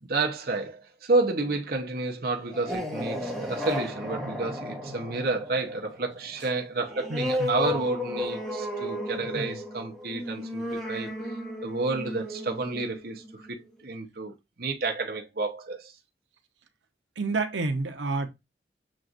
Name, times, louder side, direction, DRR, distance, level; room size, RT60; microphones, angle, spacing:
voice 1, 0.0-11.1 11.6-15.9, right 3 dB, 55° right, 0.9 m, -30 dB
sound 1, 2.4-13.6, left 1 dB, ahead, 0.9 m, -34 dB
voice 2, 7.1-7.7 9.3-9.6 17.2-18.3, right 3 dB, 85° right, 0.9 m, -30 dB
7.5 x 2.5 x 2.5 m
head